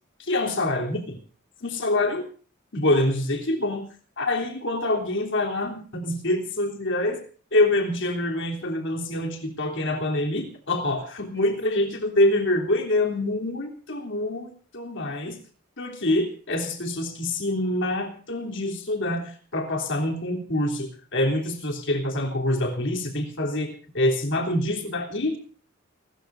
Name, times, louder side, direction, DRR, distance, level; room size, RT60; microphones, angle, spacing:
voice 1, 0.2-1.2 1.6-2.3 2.7-3.8 4.2-7.2 7.5-15.4 15.8-25.4, left 1 dB, 60° left, 3 dB, 3.4 m, -26 dB
29.0 x 13.5 x 2.6 m, 0.40 s
head